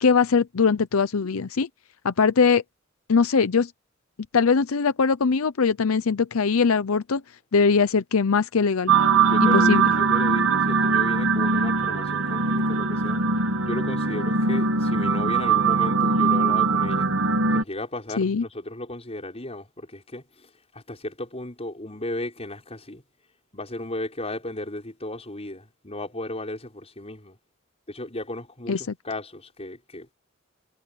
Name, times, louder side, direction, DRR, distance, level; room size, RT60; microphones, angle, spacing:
voice 1, 0.0-1.7 2.0-2.6 3.1-3.7 4.3-7.2 7.5-8.9 9.4-9.9 18.2-18.4 28.7-28.8, left 5 dB, 85° left, 0.6 m, -21 dB
sound 1, 8.9-17.6, right 4 dB, 85° right, 2.1 m, -21 dB
voice 2, 9.3-13.2 13.6-17.1 17.5-23.0 23.5-27.4 27.9-30.1, left 1 dB, 30° left, 5.6 m, -35 dB
head